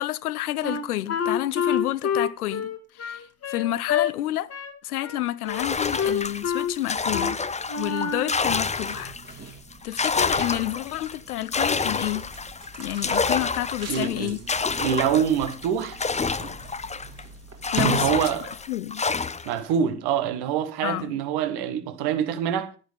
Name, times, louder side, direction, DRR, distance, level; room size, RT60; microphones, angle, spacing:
voice 1, 0.0-4.5 4.8-7.4 7.8-9.5 9.8-12.2 12.8-14.4 17.7-19.0 20.8-21.2, left 14 dB, 80° left, 0.7 m, -30 dB
Wind instrument woodwind instrument, 0.6-4.1 4.5-4.8 5.0-5.7 6.0-6.7 7.1-7.3 7.7-8.4, left 7 dB, 35° left, 1.8 m, -27 dB
sound 1, 5.5-9.3 9.7-17.2 17.6-19.6, left 4 dB, 15° left, 0.9 m, -28 dB
sound 2, 8.4-18.7, right 5 dB, 35° right, 2.5 m, -39 dB
voice 2, 13.9-14.4 14.8-16.0 17.8-18.5 19.4-22.7, right 8 dB, 60° right, 1.7 m, -25 dB
11.5 x 10.0 x 5.1 m
figure-of-eight pair, 55°, 44 cm